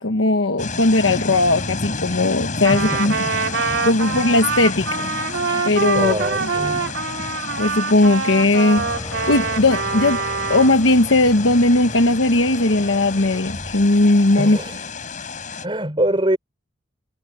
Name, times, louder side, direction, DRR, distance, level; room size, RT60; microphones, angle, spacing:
voice 1, 0.0-3.1 3.8-5.1 5.6-6.5 7.6-10.2 10.5-14.6, left 2 dB, 80° left, 1.3 m, -18 dB
sound 1, 0.6-15.7, left 3 dB, 40° left, 4.7 m, -31 dB
Trumpet, 2.6-10.7, right 5 dB, 80° right, 2.9 m, -25 dB
voice 2, 2.7-3.3 5.9-6.9 14.4-14.8 15.6-16.4, right 1 dB, 25° right, 3.9 m, -24 dB
sound 2, 8.8-14.7, equal, 10° left, 6.9 m, -37 dB
head